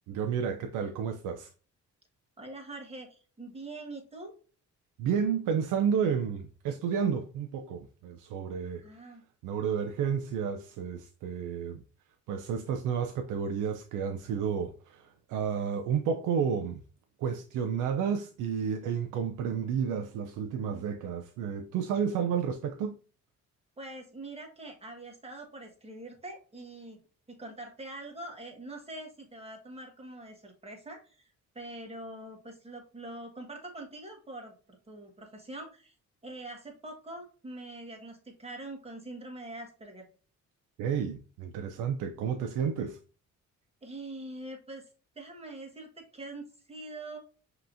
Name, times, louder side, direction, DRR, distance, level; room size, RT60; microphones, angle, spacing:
voice 1, 0.1-1.5 5.0-9.1 9.4-11.8 12.3-16.8 17.2-23.0 40.8-43.0, right 7 dB, 90° right, 0.5 m, -31 dB
voice 2, 2.4-4.3 8.8-9.2 23.8-27.0 27.3-34.5 34.9-35.9 36.2-40.1 43.8-44.8 45.1-47.2, right 2 dB, 20° right, 1.4 m, -44 dB
5.4 x 3.0 x 2.5 m
cardioid pair, 90°, 30 cm